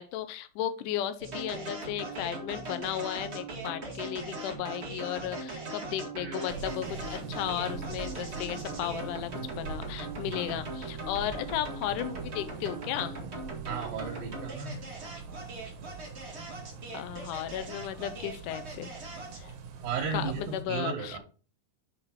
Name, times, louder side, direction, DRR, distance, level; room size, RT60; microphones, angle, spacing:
voice 1, 0.0-13.2 16.9-18.9 19.4-19.5 20.1-21.2, left 12 dB, 80° left, 11 dB, 2.2 m, -35 dB
sound 1, 1.2-19.5, right 2 dB, 40° right, 1.0 m, -40 dB
sound 2, 6.5-20.6, right 5 dB, 65° right, 2.3 m, -43 dB
voice 2, 13.7-14.8 19.8-21.2, right 6 dB, 85° right, -1 dB, 3.0 m, -34 dB
6.4 x 5.9 x 4.4 m, 0.36 s
omnidirectional pair, 3.9 m